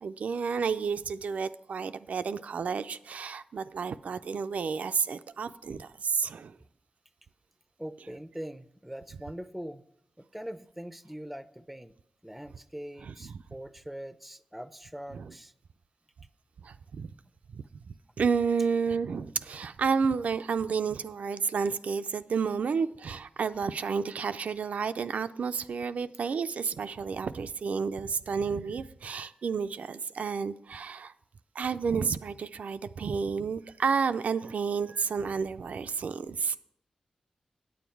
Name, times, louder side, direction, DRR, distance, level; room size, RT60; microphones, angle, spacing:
voice 1, 0.0-6.5 13.0-13.4 15.1-15.3 16.6-17.1 17.5-17.6 18.2-31.1 31.6-36.6, right 5 dB, 75° right, 0.3 m, -31 dB
voice 2, 7.8-9.8 10.2-11.9 12.2-15.5, equal, 5° right, 0.5 m, -42 dB
8.9 x 7.2 x 4.5 m
cardioid pair, 60°, 2 cm